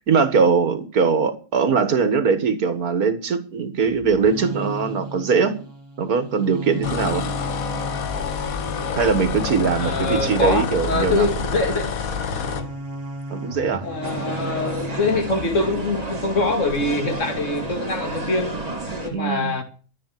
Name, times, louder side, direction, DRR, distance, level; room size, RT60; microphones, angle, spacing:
voice 1, 0.1-5.6 6.0-7.3 9.0-11.4 13.3-13.8 14.2-14.3 19.1-19.6, right 5 dB, 80° right, 2.1 m, -21 dB
sound 1, 3.9-16.9, right 2 dB, 55° right, 2.8 m, -35 dB
sound 2, 6.8-12.7, left 7 dB, 70° left, 1.6 m, -28 dB
voice 2, 9.7-11.9 13.8-18.5 19.0-19.6, left 3 dB, 55° left, 2.7 m, -24 dB
sound 3, 14.0-19.1, right 2 dB, 25° right, 2.4 m, -31 dB
13.5 x 8.7 x 7.6 m
omnidirectional pair, 1.5 m